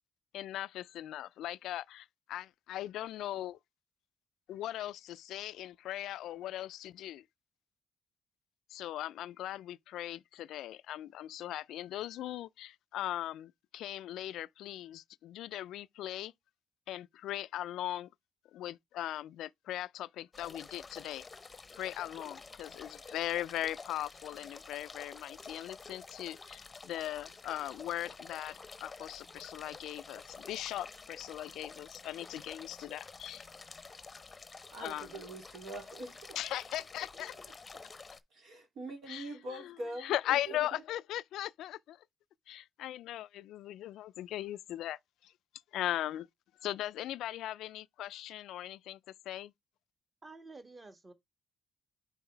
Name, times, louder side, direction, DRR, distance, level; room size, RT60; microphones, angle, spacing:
voice 1, 0.3-3.6 4.5-7.2 8.7-16.3 16.9-18.1 18.5-21.3 21.7-33.4 34.8-35.1 36.4-37.3 39.1-42.0 42.5-45.3 45.7-46.3 46.6-49.0 49.3-49.5, left 13 dB, 85° left, 0.3 m, -39 dB
sound 1, 20.3-38.2, left 4 dB, 25° left, 0.7 m, -50 dB
voice 2, 34.7-36.4 37.2-37.3 38.3-40.8, right 1 dB, 75° right, 2.8 m, -44 dB
voice 3, 50.2-51.1, right 3 dB, 25° right, 1.4 m, -50 dB
5.5 x 4.0 x 4.5 m
cardioid pair, 90°, 0 cm